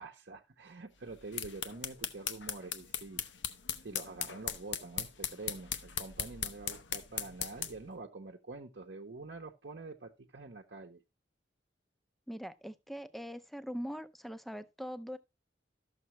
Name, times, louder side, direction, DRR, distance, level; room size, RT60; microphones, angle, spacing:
voice 1, 0.0-3.2 3.8-11.0, right 3 dB, 65° right, 0.8 m, -46 dB
sound 1, 1.1-7.9, left 9 dB, 80° left, 0.8 m, -39 dB
voice 2, 12.3-15.2, equal, ahead, 0.5 m, -42 dB
12.5 x 6.7 x 3.1 m
head